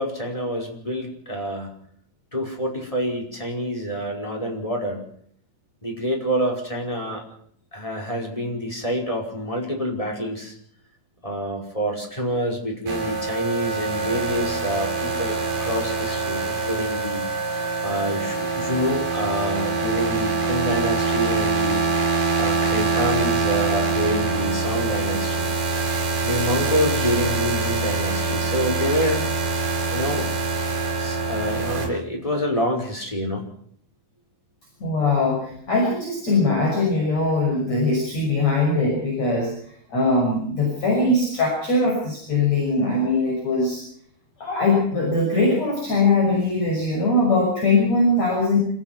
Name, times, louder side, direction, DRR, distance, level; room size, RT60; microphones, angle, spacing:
voice 1, 0.0-1.7 2.3-5.0 5.8-7.2 7.7-10.5 11.2-21.8 22.4-25.5 26.2-29.2 29.9-30.3 31.0-33.5, equal, 5° left, 1 dB, 4.9 m, -27 dB
sound 1, 12.9-31.9, right 4 dB, 60° right, 6.8 m, -24 dB
voice 2, 34.8-39.5 39.9-43.8 44.4-48.6, left 2 dB, 40° left, -1 dB, 7.2 m, -21 dB
28.0 x 17.0 x 6.1 m, 0.64 s
omnidirectional pair, 5.1 m